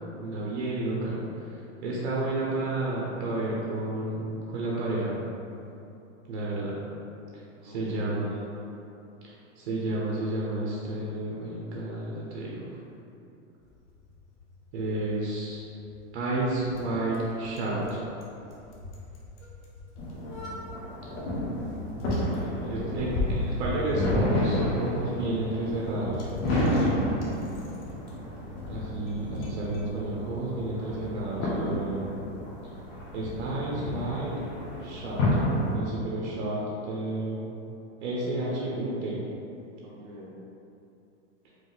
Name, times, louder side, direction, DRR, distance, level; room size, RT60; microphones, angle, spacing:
voice 1, 0.2-1.2 1.5-5.2 6.3-6.8 7.3-8.4 9.2-12.7 14.7-15.6 16.1-18.0 22.7-26.3 26.6-26.9 28.7-32.2 33.1-34.4 34.8-35.2 35.7-37.4 38.0-39.2, right 2 dB, 65° right, -5 dB, 0.8 m, -31 dB
voice 2, 7.6-8.3 21.1-22.0 22.5-23.3 39.8-40.4, equal, 25° right, -5 dB, 0.4 m, -43 dB
Bicycle, 13.6-29.9, left 3 dB, 70° left, 0.9 m, -40 dB
sound 1, 20.0-35.8, left 1 dB, 85° left, 1.4 m, -31 dB
4.7 x 2.1 x 3.9 m, 2.8 s
supercardioid pair, 175°, 37 cm